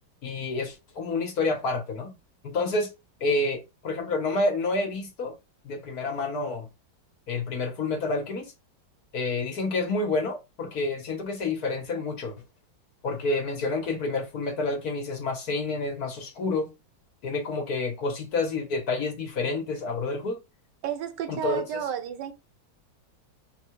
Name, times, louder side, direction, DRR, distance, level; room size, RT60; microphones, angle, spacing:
voice 1, 0.2-2.1 2.4-2.9 3.2-5.3 5.6-6.7 7.3-8.5 9.1-12.3 13.0-16.7 17.2-20.4 21.3-21.6, left 3 dB, 60° left, 1.5 m, -29 dB
voice 2, 20.8-22.3, right 9 dB, 75° right, 1.3 m, -32 dB
4.1 x 2.3 x 4.5 m
omnidirectional pair, 2.0 m